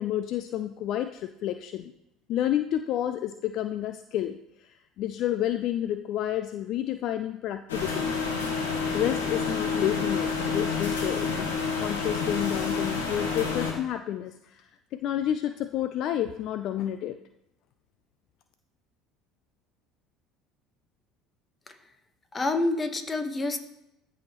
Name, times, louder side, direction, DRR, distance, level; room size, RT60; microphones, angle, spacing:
voice 1, 0.0-1.9 2.3-4.4 5.0-8.1 8.9-11.5 11.8-17.2, left 11 dB, 60° left, 9 dB, 0.4 m, -30 dB
sound 1, 7.7-13.7, left 5 dB, 85° left, 1.4 m, -29 dB
voice 2, 22.3-23.6, left 2 dB, 25° left, 7 dB, 1.1 m, -28 dB
14.0 x 4.8 x 3.0 m, 0.85 s
hypercardioid pair, 70°, 0 cm